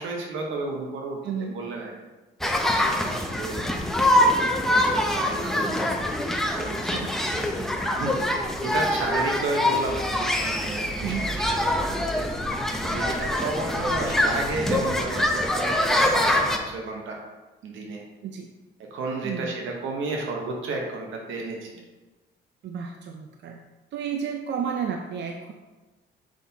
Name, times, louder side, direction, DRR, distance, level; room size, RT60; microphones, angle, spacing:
voice 1, 0.0-1.2 1.5-1.9 2.8-5.9 6.5-7.0 7.3-7.7 8.0-12.3 12.8-17.2 17.6-18.0 18.9-21.8, right 3 dB, 80° right, 0 dB, 1.0 m, -32 dB
voice 2, 1.2-1.6 6.9-7.4 11.0-11.3 18.2-18.5 19.2-19.6 22.6-23.6 23.9-25.5, right 7 dB, 60° right, 3 dB, 0.5 m, -32 dB
sound 1, 2.4-16.6, left 1 dB, ahead, 0.6 m, -24 dB
6.3 x 5.4 x 2.8 m, 1.2 s
cardioid pair, 90°, 20 cm